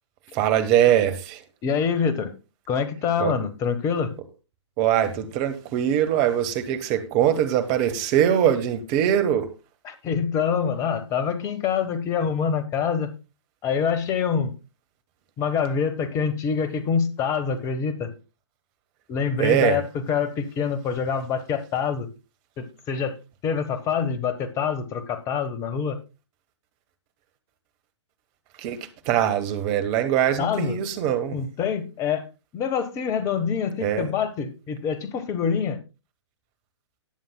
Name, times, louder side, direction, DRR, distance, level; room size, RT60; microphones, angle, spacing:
voice 1, 0.3-1.4 3.2-3.3 4.8-9.5 19.4-19.8 28.6-31.4 33.8-34.1, right 10 dB, 30° right, 1.4 m, -22 dB
voice 2, 1.6-2.3 2.7-4.1 9.8-13.1 13.6-14.5 15.4-18.1 19.1-19.8 20.1-22.1 22.6-23.2 23.4-26.0 30.4-30.7 31.3-35.8, left 6 dB, 20° left, 1.3 m, -25 dB
19.0 x 7.4 x 2.3 m
figure-of-eight pair, 120°, 15 cm